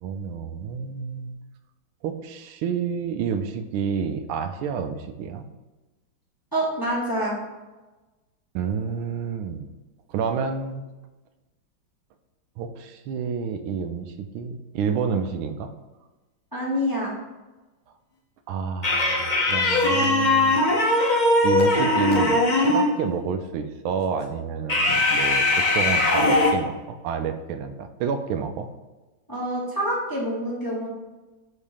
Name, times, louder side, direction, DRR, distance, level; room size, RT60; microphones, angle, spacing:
voice 1, 0.0-1.4 2.0-5.5 8.5-9.7 10.1-10.8 12.6-15.7 18.5-21.1 21.4-28.7, right 6 dB, 85° right, 8 dB, 1.4 m, -29 dB
voice 2, 6.5-7.3 16.5-17.1 29.3-30.9, equal, 15° left, -5 dB, 0.9 m, -26 dB
sound 1, 18.8-23.0 24.7-26.5, left 2 dB, 80° left, 0.4 m, -20 dB
6.4 x 3.2 x 4.9 m, 1.2 s
omnidirectional pair, 2.2 m